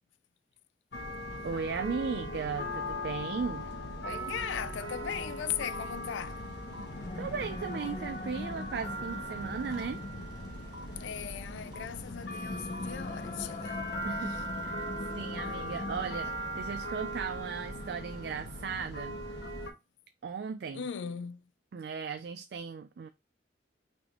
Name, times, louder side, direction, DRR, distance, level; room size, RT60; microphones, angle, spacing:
sound 1, 0.9-19.7, equal, 60° left, 1.2 m, -39 dB
voice 1, 1.4-3.7 7.2-10.0 14.0-14.4 14.6-14.8 15.1-19.2 20.2-20.8 21.7-23.1, right 5 dB, 60° right, 0.3 m, -36 dB
voice 2, 4.0-6.5 11.0-13.9 14.2-14.4 20.7-21.5, left 8 dB, 80° left, 0.4 m, -38 dB
sound 2, 5.1-5.2 5.4-16.6, equal, 25° right, 0.9 m, -52 dB
sound 3, 6.7-16.6, left 2 dB, 35° left, 0.5 m, -42 dB
4.2 x 3.3 x 2.9 m
head